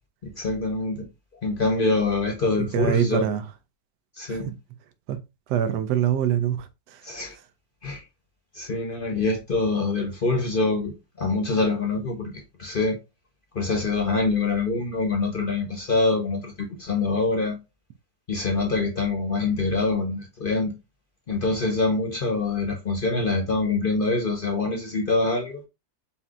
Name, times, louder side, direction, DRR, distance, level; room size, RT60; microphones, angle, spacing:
voice 1, 0.2-1.1 1.4-3.3 4.2-4.5 7.0-7.4 7.8-8.0 8.5-10.9 11.2-13.0 13.5-17.6 18.3-20.7 21.3-25.6, left 3 dB, 45° left, 0.8 m, -25 dB
voice 2, 2.7-3.4 4.3-4.4 5.1-5.2 5.5-7.0, right 9 dB, 85° right, 1.3 m, -24 dB
4.3 x 4.2 x 2.4 m
omnidirectional pair, 1.8 m